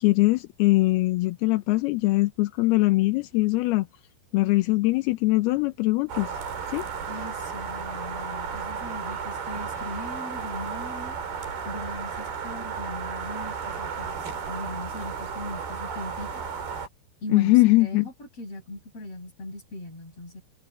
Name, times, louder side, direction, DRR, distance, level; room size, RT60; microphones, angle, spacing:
voice 1, 0.0-3.9 4.3-6.3 6.7-6.9 17.3-18.1, left 20 dB, 80° left, 2.5 m, -22 dB
sound 1, 6.1-16.9, right 6 dB, 60° right, 5.6 m, -34 dB
voice 2, 7.1-11.2 11.6-14.1 14.5-16.5 17.2-20.4, left 2 dB, 35° left, 7.8 m, -39 dB
omnidirectional pair, 5.1 m